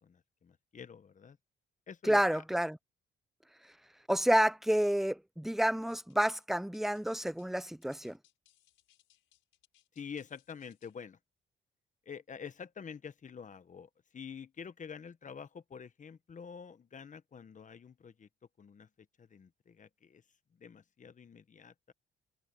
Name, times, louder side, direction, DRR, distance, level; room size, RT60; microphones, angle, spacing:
voice 1, 0.0-1.4 1.9-2.4 9.9-11.2 12.0-18.3 18.6-20.2 20.5-21.9, left 6 dB, 40° left, 1.3 m, -48 dB
voice 2, 2.0-2.8 4.1-8.2, equal, ahead, 0.7 m, -29 dB
sound 1, 5.9-11.0, left 14 dB, 90° left, 5.6 m, -69 dB
cardioid pair, 90°, 20 cm